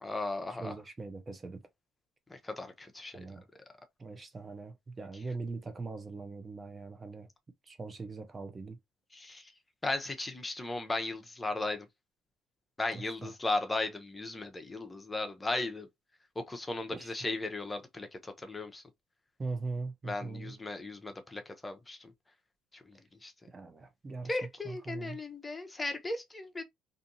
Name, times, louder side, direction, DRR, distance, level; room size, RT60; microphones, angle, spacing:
voice 1, 0.0-0.7 2.3-3.2 9.1-9.4 9.8-11.9 12.8-15.9 16.5-18.8 20.0-22.1 22.9-23.0 23.2-23.3 24.3-26.6, left 2 dB, 20° left, 0.8 m, -36 dB
voice 2, 0.6-1.6 3.1-3.4 4.0-7.3 7.7-8.8 12.9-13.3 16.9-17.1 19.4-20.6 23.5-25.2, right 3 dB, 30° right, 0.8 m, -41 dB
2.6 x 2.5 x 2.7 m
supercardioid pair, 70°, 0 cm